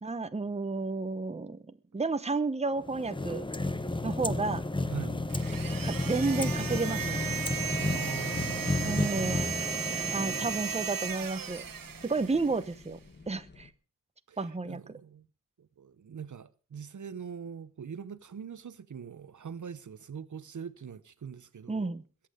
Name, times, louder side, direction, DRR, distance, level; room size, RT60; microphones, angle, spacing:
voice 1, 0.0-3.4 4.0-4.6 5.8-7.2 8.8-9.5 10.1-11.6 12.0-13.0 13.3-13.7 14.4-14.8 21.7-22.0, right 3 dB, 20° right, 0.9 m, -31 dB
sound 1, 2.8-11.1, left 2 dB, 15° left, 0.7 m, -32 dB
sound 2, 4.7-13.7, left 3 dB, 30° left, 1.3 m, -53 dB
voice 2, 4.9-5.2 7.8-9.4 10.2-10.4 14.3-15.3 15.6-21.9, right 7 dB, 60° right, 0.8 m, -42 dB
sound 3, 5.3-12.7, right 7 dB, 90° right, 1.3 m, -36 dB
22.0 x 8.7 x 5.1 m
wide cardioid pair, 115°, 33 cm